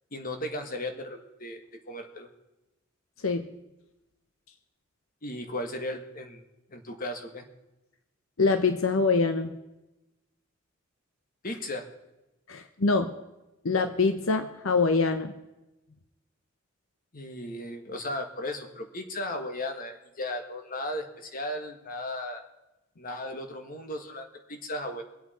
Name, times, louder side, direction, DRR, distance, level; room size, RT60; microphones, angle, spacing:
voice 1, 0.1-2.3 5.2-6.4 6.7-7.4 11.4-11.8 17.1-22.4 23.0-25.0, left 1 dB, 45° left, 5 dB, 1.6 m, -36 dB
voice 2, 8.4-9.5 12.5-13.1 13.6-15.3, left 4 dB, 85° left, 8 dB, 0.9 m, -24 dB
24.5 x 8.4 x 4.3 m, 0.98 s
head